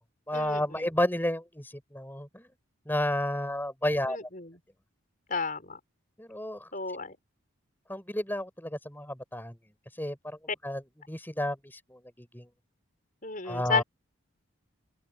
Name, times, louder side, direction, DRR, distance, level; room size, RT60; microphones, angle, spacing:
voice 1, 0.3-2.5 2.9-4.2 6.2-6.7 7.9-9.6 10.0-10.4 10.6-12.5 13.4-13.8, left 1 dB, 10° left, 6.1 m, -31 dB
voice 2, 4.1-4.5 5.3-5.8 6.7-7.2 10.5-10.6 13.2-13.8, left 4 dB, 40° left, 5.9 m, -32 dB
open air
head